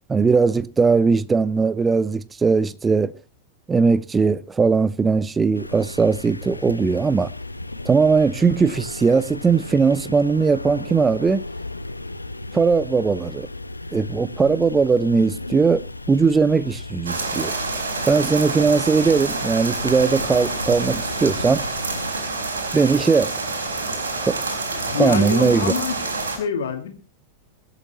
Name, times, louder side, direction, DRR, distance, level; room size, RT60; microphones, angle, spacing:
voice 1, 0.1-3.1 3.7-7.3 7.9-11.4 12.5-13.5 13.9-17.5 18.1-21.6 22.7-23.3 24.2-24.4 25.0-25.7, right 5 dB, 15° right, 0.7 m, -19 dB
sound 1, 5.5-22.1, left 2 dB, 85° left, 1.0 m, -35 dB
sound 2, 17.1-26.4, right 3 dB, 70° right, 4.5 m, -27 dB
voice 2, 24.7-26.0 26.4-26.9, left 7 dB, 60° left, 2.7 m, -26 dB
23.5 x 8.3 x 4.3 m
figure-of-eight pair, 90°, 0 cm